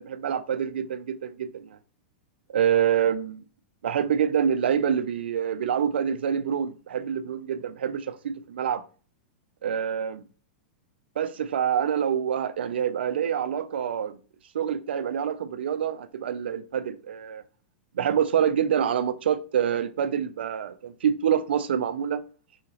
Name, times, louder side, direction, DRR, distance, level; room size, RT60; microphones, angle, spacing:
voice 1, 0.0-1.8 2.5-3.4 3.8-8.8 9.6-10.2 11.2-14.2 14.5-17.4 17.9-22.2, right 8 dB, 85° right, 0.4 m, -26 dB
3.6 x 2.8 x 2.8 m
hypercardioid pair, 125°, 6 cm